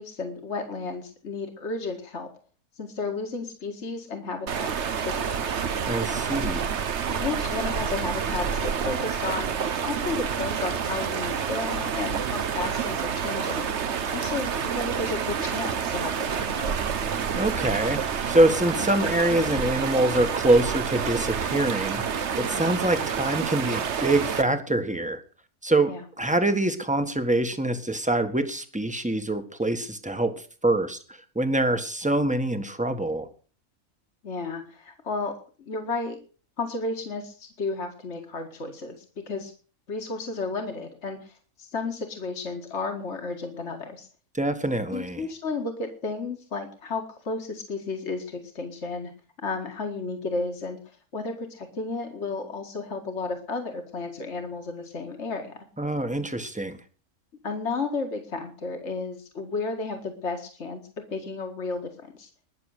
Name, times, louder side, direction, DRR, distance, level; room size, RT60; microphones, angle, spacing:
voice 1, 0.0-2.3 2.8-4.7 5.0-5.4 7.1-13.7 14.1-16.7 22.5-22.9 25.9-26.0 34.2-36.2 36.6-39.5 39.9-44.1 44.9-49.1 49.4-50.8 51.1-55.6 57.4-62.3, left 3 dB, 50° left, 4 dB, 2.3 m, -33 dB
sound 1, 4.5-24.4, right 7 dB, 55° right, 1.2 m, -28 dB
voice 2, 5.9-6.7 17.4-22.0 22.3-25.2 25.6-25.9 26.2-30.3 30.6-31.0 31.3-33.3 44.3-45.2 55.8-56.8, right 1 dB, 5° right, 8 dB, 1.5 m, -24 dB
21.0 x 7.0 x 6.6 m, 0.40 s
omnidirectional pair, 1.5 m